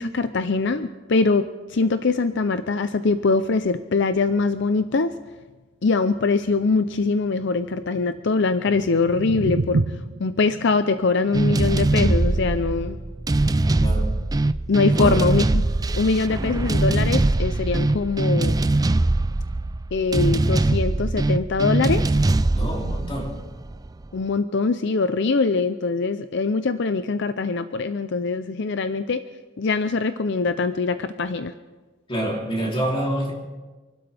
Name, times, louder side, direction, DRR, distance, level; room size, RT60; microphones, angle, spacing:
voice 1, 0.0-5.1 5.8-9.8 10.2-13.0 14.7-15.6 15.9-18.6 19.9-22.0 24.1-29.2 29.6-31.5, left 4 dB, 65° left, 10 dB, 0.6 m, -23 dB
sound 1, 8.6-14.7, right 3 dB, 75° right, 0.7 m, -31 dB
sound 2, 11.3-24.1, right 2 dB, 20° right, 0.4 m, -22 dB
voice 2, 13.8-14.2 14.9-15.3 22.5-23.4 32.1-33.3, right 1 dB, 30° left, -1 dB, 3.2 m, -27 dB
28.0 x 12.5 x 3.5 m, 1.3 s
head